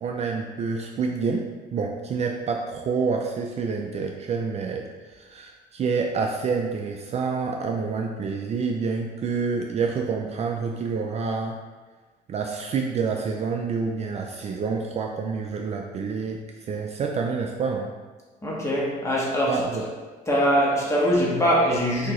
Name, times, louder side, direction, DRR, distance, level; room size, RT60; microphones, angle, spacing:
voice 1, 0.0-1.5 1.7-11.6 12.3-17.9 19.5-19.8, right 5 dB, 40° right, 1 dB, 0.4 m, -28 dB
voice 2, 18.4-19.6 20.3-22.1, equal, 15° left, -5 dB, 1.4 m, -22 dB
6.1 x 2.9 x 3.0 m, 1.4 s
cardioid pair, 110°, 17 cm